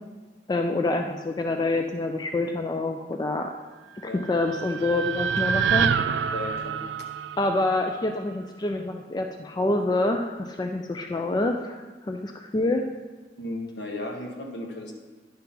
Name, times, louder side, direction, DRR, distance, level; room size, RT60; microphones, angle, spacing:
voice 1, 0.5-3.5 4.0-6.1 7.4-12.8, left 2 dB, 25° left, 4 dB, 0.4 m, -27 dB
sound 1, 4.0-8.3, right 7 dB, 65° right, 0.3 m, -27 dB
voice 2, 6.3-6.8 11.1-11.2 13.4-14.9, left 1 dB, 70° left, 1 dB, 1.3 m, -35 dB
10.0 x 3.8 x 5.7 m, 1.3 s
head